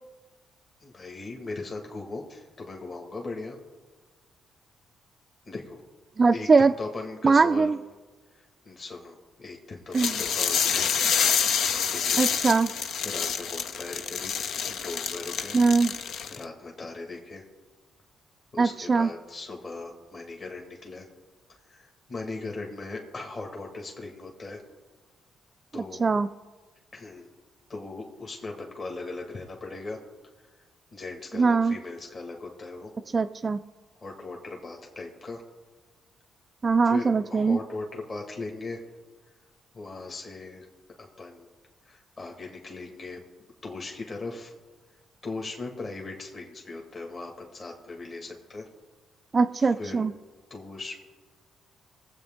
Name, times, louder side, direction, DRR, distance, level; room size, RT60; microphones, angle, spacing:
voice 1, 0.8-3.6 5.5-5.8 6.3-7.8 8.3-10.9 11.9-12.3 12.7-14.4 14.7-15.6 16.3-17.4 18.5-21.1 21.7-24.6 25.7-26.0 26.9-27.3 27.7-30.0 30.4-30.5 30.9-32.9 34.0-35.4 36.8-38.8 39.7-40.7 41.0-41.5 41.8-43.2 43.6-44.5 45.2-48.7 49.6-50.0 50.5-51.0, left 3 dB, 45° left, 1 dB, 2.1 m, -39 dB
voice 2, 6.2-6.7 7.2-7.7 9.9-10.1 12.2-12.7 15.5-15.9 18.6-19.1 26.0-26.3 31.4-31.8 33.1-33.6 36.6-37.6 49.3-50.1, right 4 dB, 35° right, 7 dB, 0.3 m, -21 dB
sound 1, 9.9-16.4, left 7 dB, 75° left, 0.6 m, -27 dB
21.0 x 7.9 x 3.8 m, 1.3 s
cardioid pair, 85°, 0 cm